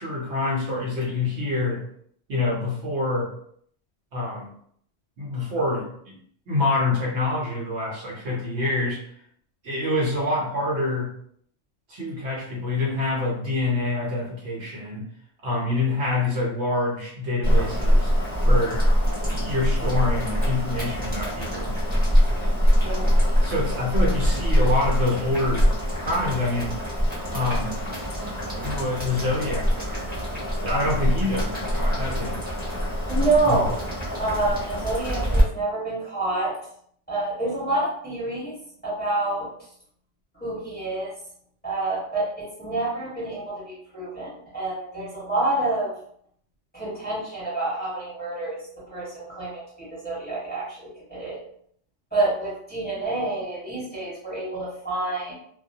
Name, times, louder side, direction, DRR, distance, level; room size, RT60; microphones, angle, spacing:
voice 1, 0.0-1.8 2.3-3.3 4.1-4.5 5.2-6.2 6.5-9.0 9.6-11.1 11.9-15.1 15.4-18.1 18.4-18.8 19.3-21.7 22.4-22.6 23.4-25.7 26.0-26.8 27.3-27.8 28.6-30.1 30.6-32.4 33.5-33.7, left 2 dB, 65° right, -3 dB, 0.9 m, -26 dB
Boiling, 17.4-35.4, equal, 10° right, 0.9 m, -24 dB
voice 2, 22.8-23.1 33.1-33.8 34.2-36.5 37.1-38.5 38.8-39.5 40.3-41.1 41.6-45.9 46.7-48.6 48.9-51.4 52.1-55.3, right 2 dB, 10° left, -8 dB, 1.0 m, -27 dB
2.2 x 2.1 x 2.6 m, 0.65 s
omnidirectional pair, 1.2 m